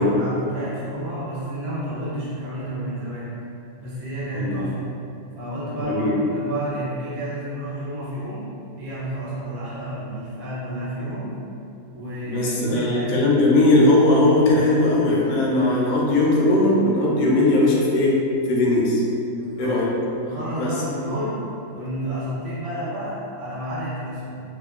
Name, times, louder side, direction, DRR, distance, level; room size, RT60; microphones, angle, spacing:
voice 1, 0.0-3.4 3.8-5.0 5.3-8.4 8.8-11.3 11.9-13.6 19.3-19.9 20.2-24.4, right 1 dB, 60° right, -9 dB, 1.0 m, -30 dB
voice 2, 12.3-18.2 18.5-19.0 19.6-19.9 20.6-20.7, left 2 dB, 70° left, -4 dB, 0.8 m, -19 dB
2.8 x 2.1 x 2.3 m, 2.6 s
omnidirectional pair, 1.7 m